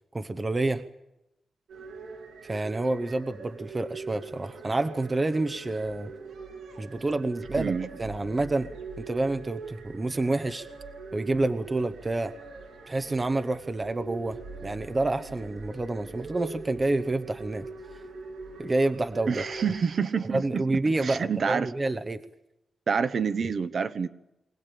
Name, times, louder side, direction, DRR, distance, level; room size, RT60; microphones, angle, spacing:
voice 1, 0.1-0.8 2.4-6.1 6.8-7.7 8.0-8.7 9.0-10.7 11.1-12.3 12.9-17.7 18.6-19.4 20.3-22.2, right 2 dB, 20° right, 9 dB, 0.9 m, -28 dB
sound 1, 1.7-19.8, right 4 dB, 85° right, 5.0 m, -43 dB
voice 2, 7.6-7.9 19.3-20.6 21.0-21.7 22.9-24.1, right 6 dB, 50° right, 11 dB, 1.0 m, -27 dB
24.0 x 18.0 x 8.5 m, 0.88 s
wide cardioid pair, 170°, 0 cm